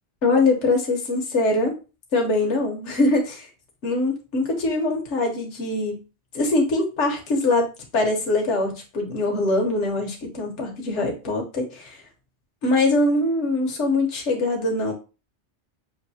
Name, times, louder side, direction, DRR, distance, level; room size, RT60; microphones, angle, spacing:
voice 1, 0.2-1.7 2.1-3.5 3.8-6.0 6.3-7.7 7.9-12.0 12.6-14.9, left 2 dB, 80° left, 1 dB, 1.4 m, -23 dB
6.5 x 2.6 x 2.7 m, 0.31 s
omnidirectional pair, 1.2 m